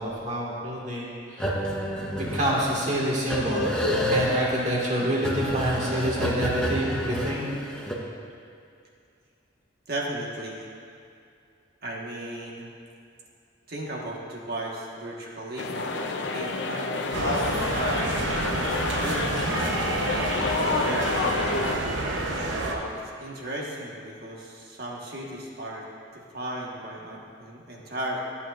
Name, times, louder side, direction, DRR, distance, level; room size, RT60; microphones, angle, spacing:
voice 1, 0.0-1.5 2.3-3.7 4.1-7.4, right 1 dB, 40° right, -5 dB, 1.9 m, -27 dB
sound 1, 1.4-7.9, equal, 5° left, 0.9 m, -29 dB
voice 2, 9.9-10.7 11.8-12.6 13.7-18.2 19.0-20.3 20.8-21.9 22.7-25.9 26.1-28.2, right 1 dB, 55° right, -2 dB, 1.4 m, -35 dB
sound 2, 15.6-21.8, left 3 dB, 65° left, 0.6 m, -29 dB
sound 3, 17.1-22.7, right 2 dB, 75° right, 0.9 m, -29 dB
14.0 x 8.6 x 2.5 m, 2.4 s
head